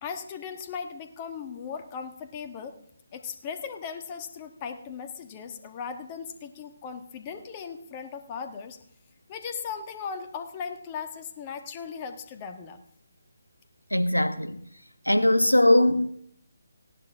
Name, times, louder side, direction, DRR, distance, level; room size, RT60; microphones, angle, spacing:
voice 1, 0.0-2.8 3.1-8.8 9.3-12.8, left 6 dB, 25° left, 1.4 m, -37 dB
voice 2, 13.9-14.6 15.1-16.1, left 1 dB, 85° left, 1.2 m, -20 dB
19.0 x 16.0 x 3.6 m
figure-of-eight pair, 145°, 0 cm